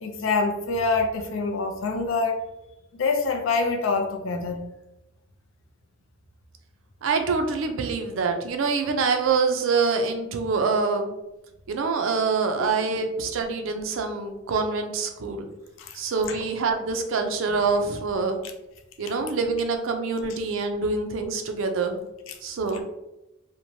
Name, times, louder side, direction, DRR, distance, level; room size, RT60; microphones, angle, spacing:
voice 1, 0.0-2.4 2.9-4.6 12.6-13.0 15.8-16.0 16.3-16.4 22.3-22.4 22.7-22.8, left 3 dB, 70° left, 5 dB, 0.4 m, -26 dB
voice 2, 7.0-11.1 11.7-15.5 15.9-18.4 19.0-22.0 22.4-22.8, right 4 dB, 70° right, 5 dB, 0.4 m, -25 dB
2.9 x 2.1 x 2.6 m, 0.95 s
head